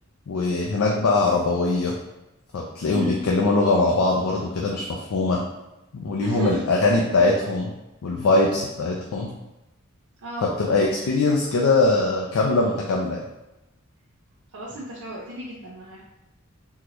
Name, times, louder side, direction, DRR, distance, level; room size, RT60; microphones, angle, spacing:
voice 1, 0.3-1.9 2.5-5.4 5.9-7.7 8.0-9.3 10.4-13.2, left 3 dB, 85° left, -1 dB, 0.4 m, -22 dB
voice 2, 2.9-3.2 6.2-6.6 10.2-10.5 14.5-16.0, right 1 dB, 85° right, -5 dB, 0.7 m, -33 dB
3.7 x 2.2 x 3.0 m, 0.96 s
head